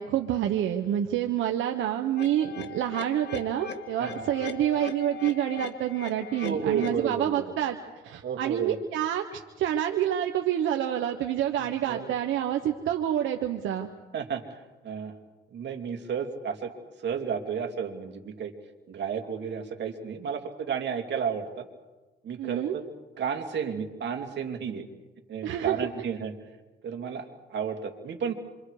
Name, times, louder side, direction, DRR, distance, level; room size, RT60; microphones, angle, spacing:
voice 1, 0.0-7.8 8.0-13.9 22.4-22.7 25.4-25.9, right 11 dB, 85° right, 4 dB, 1.2 m, -28 dB
sound 1, 2.2-7.2, left 6 dB, 60° left, 1.9 m, -40 dB
voice 2, 6.4-7.5 8.2-8.8 11.6-12.1 14.1-15.1 15.5-16.7 17.0-18.5 18.9-21.6 22.2-22.8 23.2-24.9 25.3-26.3 26.8-28.3, right 7 dB, 65° right, 4 dB, 2.8 m, -32 dB
27.5 x 25.0 x 5.0 m, 1.2 s
cardioid pair, 100°, 20 cm